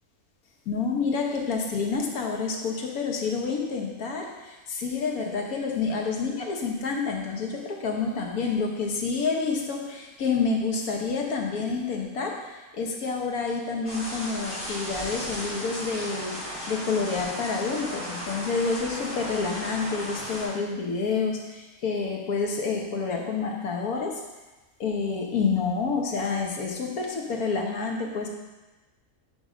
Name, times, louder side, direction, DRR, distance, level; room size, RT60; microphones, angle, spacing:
voice 1, 0.7-16.4 16.7-24.2 24.8-28.3, left 4 dB, 90° left, 1 dB, 1.6 m, -28 dB
sound 1, 13.9-20.5, equal, 45° left, 3.2 m, -35 dB
10.0 x 3.6 x 5.1 m, 1.1 s
omnidirectional pair, 1.5 m